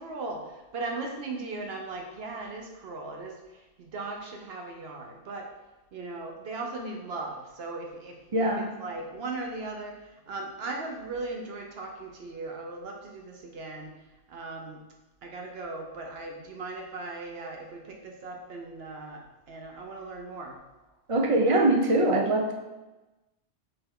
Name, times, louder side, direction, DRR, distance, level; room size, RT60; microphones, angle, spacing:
voice 1, 0.0-5.5 5.9-13.9 14.3-14.8 15.2-20.6, right 3 dB, 60° right, 2 dB, 0.9 m, -38 dB
voice 2, 8.3-8.7 21.1-22.5, right 1 dB, 45° right, 1 dB, 0.4 m, -23 dB
4.4 x 3.3 x 3.6 m, 1.1 s
omnidirectional pair, 1.2 m